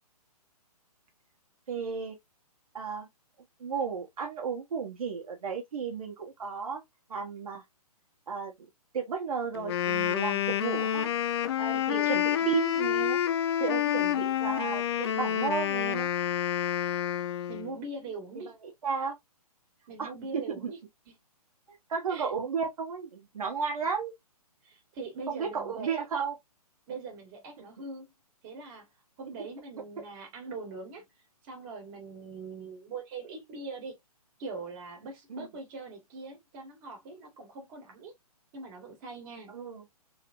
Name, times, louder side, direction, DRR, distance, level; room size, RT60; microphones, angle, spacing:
voice 1, 1.7-2.2 2.7-3.1 3.6-6.8 7.1-7.6 8.3-8.7 8.9-11.1 11.6-13.2 13.6-16.1 18.6-19.2 20.0-20.7 21.9-24.1 25.3-26.4 35.3-35.5 39.5-39.8, right 6 dB, 65° right, 1.4 m, -33 dB
Wind instrument woodwind instrument, 9.5-17.7, left 10 dB, 40° left, 0.5 m, -28 dB
voice 2, 11.7-12.1 12.4-12.6 13.8-14.3 17.5-18.5 19.9-20.8 21.1-21.2 22.1-22.3 24.6-26.0 26.9-28.1 28.4-28.9 29.2-31.1 31.4-34.0 34.4-38.1 38.5-39.6, right 3 dB, 30° right, 1.9 m, -42 dB
3.9 x 3.2 x 2.5 m
hypercardioid pair, 140°, 20 cm